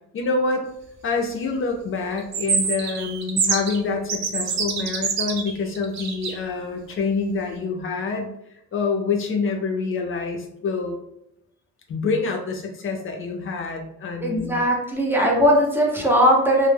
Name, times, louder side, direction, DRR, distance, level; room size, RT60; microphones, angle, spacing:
voice 1, 0.1-0.7 1.0-8.3 8.7-11.0 11.9-14.6, left 4 dB, 45° left, 2 dB, 0.4 m, -26 dB
sound 1, 2.2-3.8 4.1-6.4, right 5 dB, 60° right, 0.6 m, -25 dB
voice 2, 14.2-16.7, equal, 5° right, -1 dB, 0.6 m, -19 dB
2.1 x 2.0 x 3.3 m, 0.78 s
cardioid pair, 90°, 30 cm